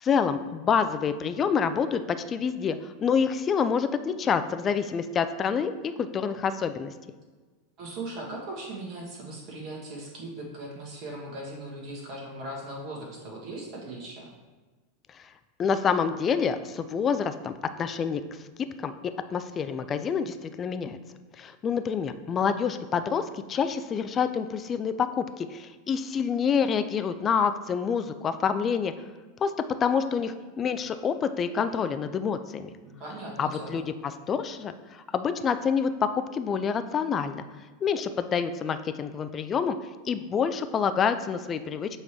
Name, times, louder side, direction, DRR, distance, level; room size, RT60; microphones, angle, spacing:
voice 1, 0.0-6.9 15.6-18.2 18.6-21.0 21.4-28.9 29.4-29.5 29.8-32.7 33.4-33.8 34.3-37.4 37.8-39.8 40.0-41.9, left 6 dB, 30° left, 10 dB, 0.4 m, -27 dB
voice 2, 7.8-14.3 32.8-33.8, right 1 dB, 40° right, -2 dB, 1.5 m, -39 dB
7.2 x 3.2 x 4.4 m, 1.3 s
figure-of-eight pair, 85°, 0 cm